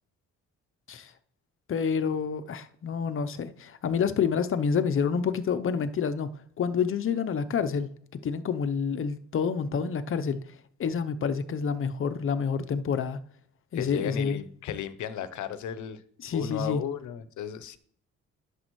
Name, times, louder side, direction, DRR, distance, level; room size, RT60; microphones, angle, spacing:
voice 1, 1.7-6.3 6.6-7.9 8.2-10.4 10.8-13.2 13.7-14.4 16.2-16.8, left 6 dB, 45° left, 0.7 m, -28 dB
voice 2, 13.7-16.0 16.3-17.8, left 9 dB, 75° left, 0.8 m, -34 dB
11.0 x 6.9 x 3.1 m
cardioid pair, 90°, 30 cm